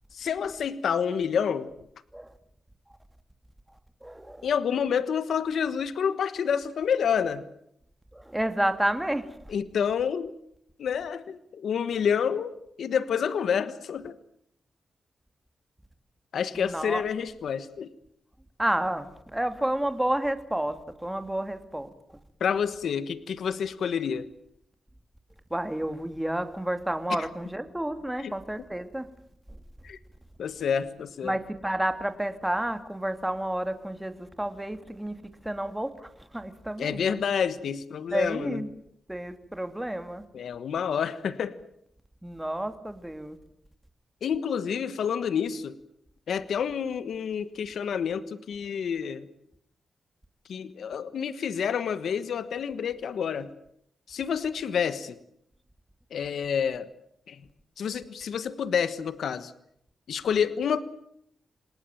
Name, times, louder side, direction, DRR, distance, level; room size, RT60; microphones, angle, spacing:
voice 1, 0.1-1.7 4.4-7.4 9.5-10.3 10.8-14.1 16.3-17.9 22.4-24.3 27.2-27.3 28.2-28.3 29.8-30.0 30.4-31.4 36.8-38.7 40.3-41.6 44.2-45.8 46.3-49.3 50.5-53.5 54.1-55.2 56.1-56.9 57.3-57.4 57.8-59.5 60.1-60.8, left 7 dB, 80° left, 14 dB, 1.3 m, -28 dB
voice 2, 4.0-4.5 8.1-9.3 16.5-17.0 18.6-21.9 25.5-29.1 31.2-35.2 35.4-37.2 38.1-38.7 39.1-40.2 42.2-43.4, right 1 dB, 10° right, 9 dB, 2.6 m, -30 dB
28.0 x 19.5 x 9.2 m, 0.74 s
cardioid pair, 95°, 0 cm